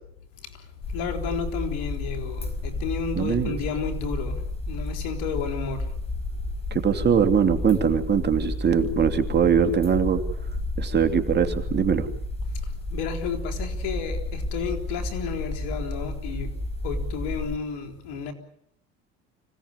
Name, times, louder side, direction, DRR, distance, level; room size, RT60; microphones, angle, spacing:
voice 1, 0.4-5.9 12.4-16.5 16.8-18.3, left 5 dB, 80° left, 4.1 m, -32 dB
sound 1, 0.8-17.6, left 2 dB, 20° left, 4.8 m, -31 dB
voice 2, 3.2-3.6 6.7-10.2 10.8-12.1, right 7 dB, 35° right, 2.9 m, -22 dB
25.5 x 17.5 x 9.8 m
supercardioid pair, 95°, 30 cm